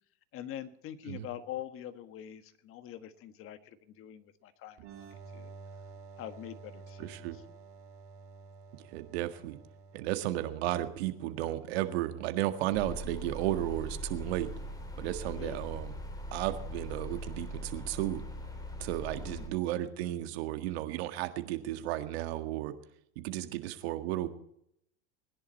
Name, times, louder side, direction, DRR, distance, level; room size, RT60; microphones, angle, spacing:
voice 1, 0.3-5.5 6.2-7.4 15.3-15.6 19.3-19.5, left 11 dB, 40° left, 10 dB, 1.5 m, -44 dB
sound 1, 4.8-12.2, right 4 dB, 45° right, 2.7 m, -51 dB
voice 2, 7.0-7.4 8.9-9.6 9.9-14.5 15.0-15.9 16.3-18.2 18.8-22.7 23.2-24.3, right 14 dB, 70° right, 8 dB, 1.8 m, -34 dB
sound 2, 12.7-19.5, equal, 10° left, 2.9 m, -41 dB
20.5 x 10.5 x 4.2 m, 0.74 s
supercardioid pair, 120°, 32 cm